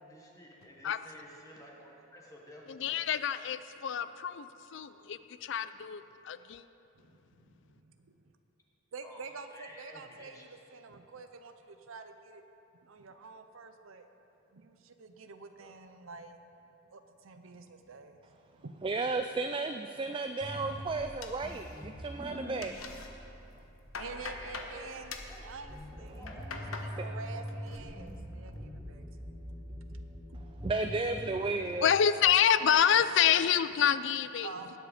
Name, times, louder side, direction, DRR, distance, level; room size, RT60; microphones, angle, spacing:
voice 1, 0.0-3.0 9.0-9.2 9.5-10.4 15.6-15.7 24.0-26.5, left 1 dB, 15° left, -2 dB, 1.2 m, -52 dB
voice 2, 2.7-6.6 31.8-34.5, left 9 dB, 60° left, 13 dB, 0.4 m, -27 dB
voice 3, 7.0-8.2 8.9-12.4 12.8-14.1 14.5-16.4 16.9-18.8 20.1-20.2 24.0-25.2 25.4-26.3 26.5-29.3 29.7-30.5 34.4-34.8, right 4 dB, 80° right, 7 dB, 0.7 m, -48 dB
voice 4, 18.8-22.8 30.6-31.9, right 3 dB, 25° right, 6 dB, 0.3 m, -33 dB
sound 1, 20.4-31.7, equal, 5° right, 1.5 m, -44 dB
sound 2, 21.2-22.1 22.3-23.1 23.5-24.7 25.1-25.4 26.0-26.9 27.3-27.8 28.2-28.6, left 4 dB, 90° left, 1.1 m, -44 dB
18.5 x 7.6 x 5.0 m, 2.9 s
head